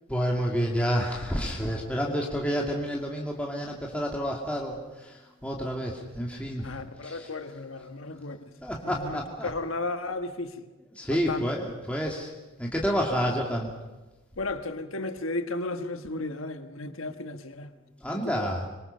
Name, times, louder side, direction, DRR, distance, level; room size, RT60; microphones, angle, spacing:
voice 1, 0.1-6.7 7.0-7.3 8.6-9.5 11.0-12.3 12.6-13.7 18.0-18.7, equal, 5° left, -2 dB, 2.3 m, -29 dB
voice 2, 6.6-8.5 8.8-10.7 11.1-11.4 14.4-17.8 18.1-18.4, left 2 dB, 65° left, 8 dB, 1.4 m, -34 dB
26.0 x 24.0 x 5.6 m, 1.2 s
head